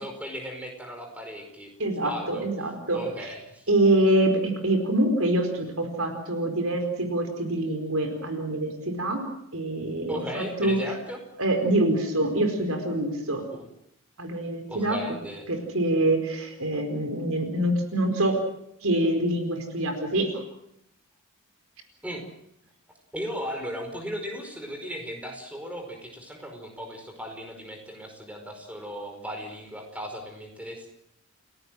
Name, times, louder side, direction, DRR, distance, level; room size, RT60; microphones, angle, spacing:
voice 1, 0.0-1.7 2.0-2.5 2.9-3.7 10.1-11.2 13.5-13.6 14.7-15.4 22.0-22.2 23.1-30.9, equal, 5° right, 3 dB, 5.0 m, -36 dB
voice 2, 1.8-3.3 3.7-9.2 9.5-10.8 11.4-13.4 14.2-15.0 15.5-18.4 18.8-20.4, right 1 dB, 70° right, 6 dB, 4.6 m, -25 dB
30.0 x 17.5 x 7.8 m, 0.76 s
head